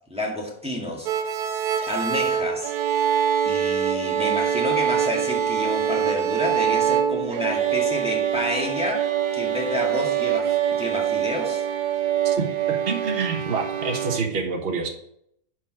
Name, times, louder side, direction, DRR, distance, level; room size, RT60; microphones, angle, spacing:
voice 1, 0.1-1.1 1.9-2.7 3.5-11.7, left 1 dB, 5° right, -1 dB, 1.9 m, -29 dB
sound 1, 1.1-14.2, right 9 dB, 85° right, 1.3 m, -24 dB
voice 2, 12.2-14.9, right 4 dB, 40° right, 3 dB, 1.4 m, -27 dB
10.5 x 4.9 x 6.2 m, 0.72 s
omnidirectional pair, 1.6 m